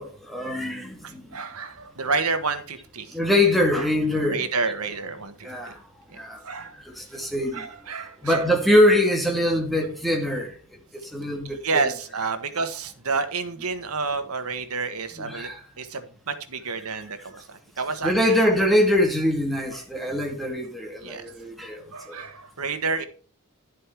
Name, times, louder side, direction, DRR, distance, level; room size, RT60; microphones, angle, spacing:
voice 1, 0.0-1.2 3.1-4.4 5.4-5.8 6.2-6.7 7.0-7.7 8.2-10.5 10.9-11.8 15.2-15.6 18.0-22.2, left 1 dB, ahead, 2.3 m, -23 dB
voice 2, 1.0-3.2 3.7-3.8 4.2-5.7 6.4-6.7 7.5-8.4 11.6-15.5 15.8-18.3 19.7-19.8 21.0-21.3 21.9-23.1, right 4 dB, 80° right, 1.5 m, -29 dB
11.5 x 7.6 x 4.6 m
head